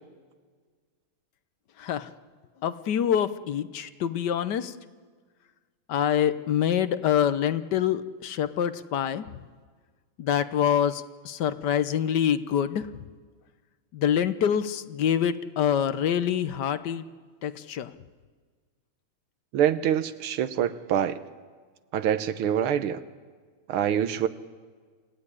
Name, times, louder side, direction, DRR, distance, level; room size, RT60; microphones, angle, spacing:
voice 1, 1.8-2.1 2.6-4.7 5.9-9.2 10.2-12.9 13.9-17.0 17.4-17.9, left 9 dB, 60° left, 12 dB, 1.3 m, -26 dB
voice 2, 19.5-21.2 21.9-23.0 23.7-24.3, right 9 dB, 85° right, 11 dB, 1.8 m, -25 dB
27.5 x 16.0 x 9.9 m, 1.5 s
omnidirectional pair, 2.3 m